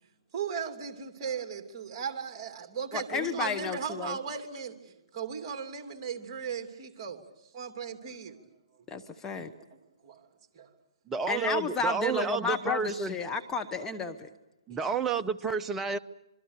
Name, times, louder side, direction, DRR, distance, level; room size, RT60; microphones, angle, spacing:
voice 1, 0.3-7.2 7.5-8.4 10.0-10.3 10.5-10.7 14.7-15.1, right 6 dB, 35° right, 5 dB, 2.8 m, -37 dB
voice 2, 2.9-4.2 8.9-9.5 11.3-14.3, left 4 dB, 15° left, 5 dB, 1.1 m, -32 dB
voice 3, 11.1-13.2 14.7-16.0, right 5 dB, 10° right, 9 dB, 0.8 m, -30 dB
26.0 x 24.0 x 6.7 m, 0.94 s
hypercardioid pair, 135°, 3 cm